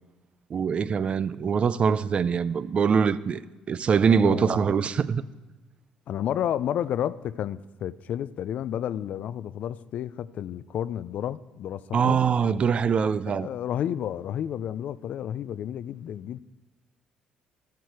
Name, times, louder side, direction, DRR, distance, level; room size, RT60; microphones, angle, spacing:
voice 1, 0.5-3.4 3.7-5.2 11.9-13.5, right 6 dB, 45° right, 0.5 m, -23 dB
voice 2, 4.2-4.6 6.1-12.2 13.3-16.4, left 10 dB, 65° left, 0.4 m, -31 dB
12.0 x 10.5 x 4.8 m
supercardioid pair, 75°, 3 cm